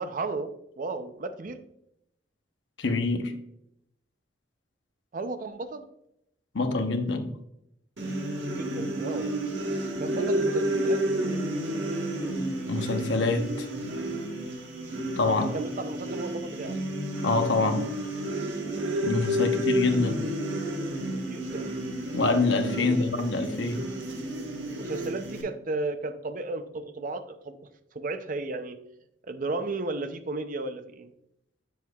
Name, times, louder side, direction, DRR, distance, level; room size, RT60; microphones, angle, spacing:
voice 1, 0.0-1.6 5.1-5.8 8.5-9.3 9.9-11.0 15.4-16.8 21.3-21.8 22.8-23.2 23.5-23.6 24.8-27.6 27.9-28.8 29.3-31.1, right 3 dB, 45° right, 9 dB, 0.5 m, -34 dB
voice 2, 2.8-3.3 6.5-7.3 12.7-13.5 15.2-15.5 17.2-17.8 19.0-20.2 22.1-23.9, left 3 dB, 80° left, 5 dB, 0.9 m, -25 dB
sound 1, 8.0-25.4, right 1 dB, 80° right, 1.4 m, -31 dB
7.7 x 7.2 x 2.3 m, 0.80 s
head